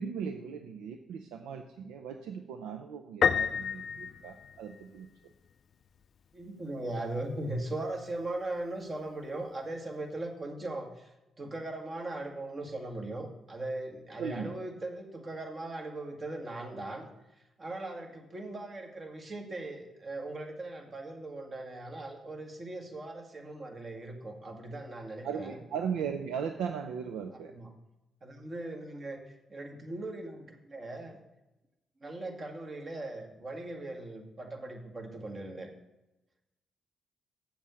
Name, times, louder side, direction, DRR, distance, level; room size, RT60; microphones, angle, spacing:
voice 1, 0.0-5.1 14.2-14.5 25.2-27.5, right 7 dB, 75° right, 5 dB, 0.5 m, -37 dB
Piano, 3.2-5.0, left 7 dB, 60° left, 0.4 m, -29 dB
voice 2, 6.3-11.1 11.4-17.1 17.6-25.6 27.5-27.7 28.2-31.2 32.0-35.7, right 2 dB, 40° right, 3 dB, 1.9 m, -39 dB
7.3 x 7.2 x 6.4 m, 0.98 s
hypercardioid pair, 40°, 0 cm